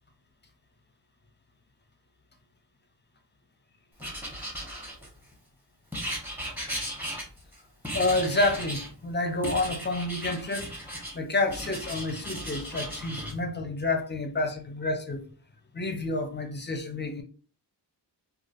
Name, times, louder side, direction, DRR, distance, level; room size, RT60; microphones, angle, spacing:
Writing, 4.0-5.3 5.9-7.5 7.8-8.9 9.4-11.2 11.5-13.3, equal, 5° right, 1.1 m, -36 dB
voice 1, 7.9-15.3 15.7-17.2, left 2 dB, 25° left, 0.6 m, -29 dB
3.2 x 2.4 x 2.5 m
wide cardioid pair, 90°, 42 cm